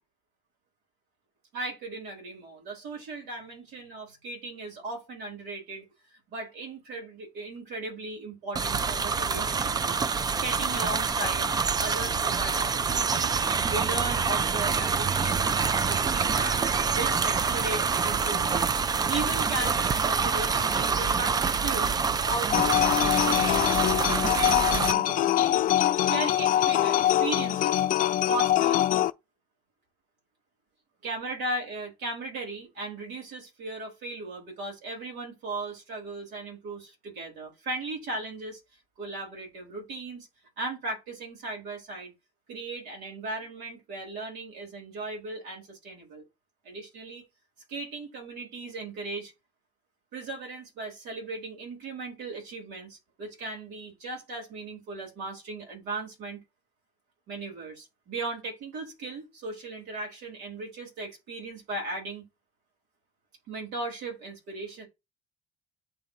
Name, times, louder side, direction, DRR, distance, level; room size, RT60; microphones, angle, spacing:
voice 1, 1.5-5.9 6.3-10.0 10.4-11.5 11.8-13.4 13.7-18.7 19.1-22.0 22.2-25.7 26.0-27.8 28.2-28.9 31.0-38.6 39.0-40.3 40.6-42.1 42.5-46.2 46.6-47.3 47.7-49.3 50.1-56.4 57.3-62.3 63.5-64.9, right 3 dB, 90° right, 3.5 m, -37 dB
sound 1, 8.6-24.9, right 5 dB, 25° right, 0.4 m, -26 dB
sound 2, 22.5-29.1, left 12 dB, 55° left, 0.4 m, -24 dB
9.0 x 3.9 x 2.8 m
cardioid pair, 110°, 17 cm